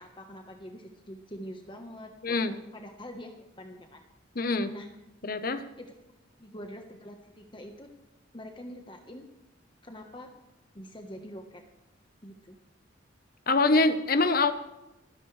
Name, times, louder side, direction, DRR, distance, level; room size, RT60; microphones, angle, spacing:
voice 1, 0.0-4.0 4.7-4.9 5.8-5.9 6.4-7.9 8.3-9.3 9.8-10.3 10.7-11.6 12.2-12.6, equal, 25° left, 4 dB, 1.3 m, -45 dB
voice 2, 4.3-4.7 5.2-5.6 13.5-14.5, left 3 dB, 50° left, 10 dB, 1.0 m, -24 dB
29.0 x 11.0 x 3.3 m, 0.96 s
head